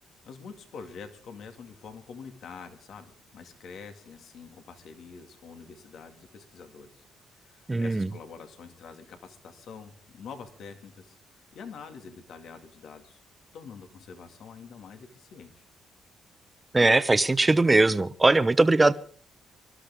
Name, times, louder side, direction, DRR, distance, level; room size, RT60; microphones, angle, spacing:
voice 1, 0.3-7.0 7.3-11.2 11.5-13.2 13.5-15.6, left 5 dB, 70° left, 6 dB, 2.2 m, -46 dB
voice 2, 7.7-8.1 16.7-18.9, right 2 dB, 20° right, 14 dB, 0.9 m, -20 dB
25.5 x 12.5 x 3.6 m, 0.44 s
cardioid pair, 90°, 0 cm